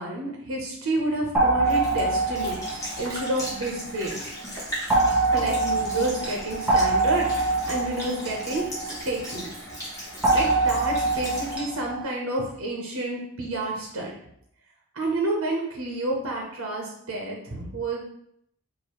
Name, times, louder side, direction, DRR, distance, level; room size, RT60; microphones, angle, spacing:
voice 1, 0.0-2.6 3.0-4.1 5.3-8.6 9.0-9.5 10.3-14.1 15.0-18.0, right 2 dB, 80° right, -1 dB, 0.8 m, -29 dB
sound 1, 1.3-4.1 4.9-9.4 10.2-12.0, right 3 dB, 5° right, 0.6 m, -24 dB
Sink (filling or washing) / Liquid, 1.6-11.6, equal, 15° left, 1.0 m, -38 dB
4.7 x 2.6 x 3.0 m, 0.72 s
head